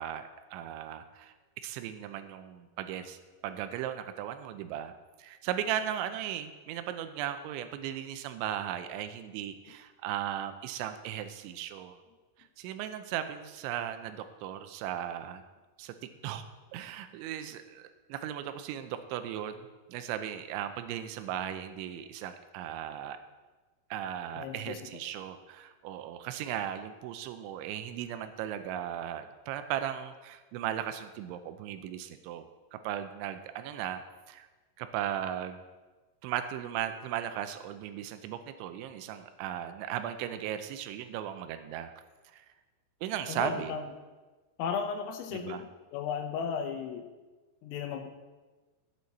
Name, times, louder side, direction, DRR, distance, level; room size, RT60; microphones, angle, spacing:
voice 1, 0.0-1.3 1.6-4.9 5.2-12.0 12.6-15.4 15.8-16.0 16.2-16.4 16.7-23.2 23.9-34.5 34.8-35.6 36.2-41.9 42.3-42.5 43.0-43.7 45.3-45.6, right 10 dB, 80° right, 9 dB, 2.8 m, -37 dB
voice 2, 24.3-24.8 43.3-43.8 44.6-47.0 47.6-48.1, left 6 dB, 90° left, 4 dB, 3.6 m, -35 dB
14.5 x 9.3 x 4.2 m, 1.3 s
omnidirectional pair, 5.8 m